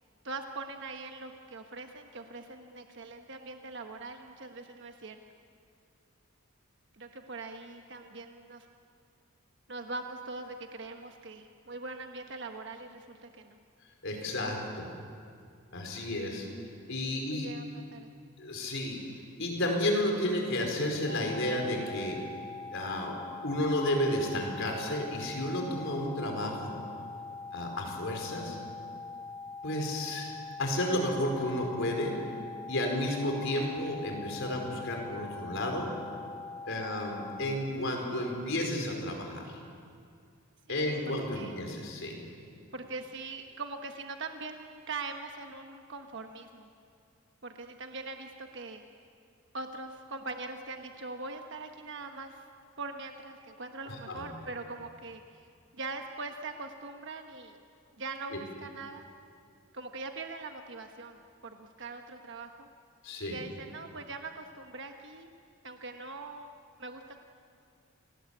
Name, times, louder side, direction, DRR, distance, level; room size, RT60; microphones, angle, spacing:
voice 1, 0.2-5.2 6.9-8.7 9.7-13.6 17.0-18.1 36.7-36.9 40.7-41.0 41.3-41.6 42.7-46.7 47.4-48.8 49.5-52.5 52.8-55.5 55.7-57.6 58.0-59.0 59.7-62.7 63.2-65.3 65.6-66.5 66.8-67.2, right 3 dB, 55° right, 5 dB, 1.3 m, -42 dB
voice 2, 14.0-14.9 15.7-17.5 18.4-19.0 19.4-22.2 22.7-23.2 23.4-26.8 27.5-28.6 29.6-30.3 30.6-32.1 32.7-35.9 36.7-39.4 40.7-42.2 53.9-54.3 58.3-58.4 63.0-63.4, left 1 dB, 60° left, 2 dB, 4.9 m, -32 dB
sound 1, 21.1-37.4, left 4 dB, 85° right, 6.6 m, -43 dB
28.5 x 19.5 x 8.5 m, 2.3 s
head